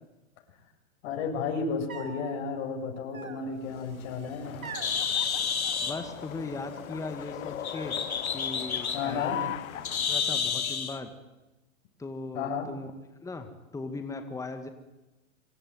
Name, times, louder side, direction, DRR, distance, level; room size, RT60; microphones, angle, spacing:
voice 1, 1.0-4.6 8.9-9.4 12.3-12.7, left 5 dB, 50° left, 2 dB, 7.5 m, -32 dB
sound 1, 1.9-2.3 3.1-3.8 4.6-5.0 5.6-6.5 6.7-7.3 7.7-8.3 9.0-9.9 10.2-10.9, right 5 dB, 80° right, 4.2 m, -46 dB
Bird, 3.7-11.0, left 6 dB, 90° left, 3.0 m, -32 dB
sound 2, 4.4-10.2, left 11 dB, 65° left, 1.6 m, -40 dB
voice 2, 5.8-8.0 8.3-9.5 10.1-11.1 12.0-12.9 13.2-14.7, left 3 dB, 10° left, 7 dB, 2.0 m, -38 dB
25.0 x 24.5 x 9.5 m, 1.0 s
hypercardioid pair, 120°, 41 cm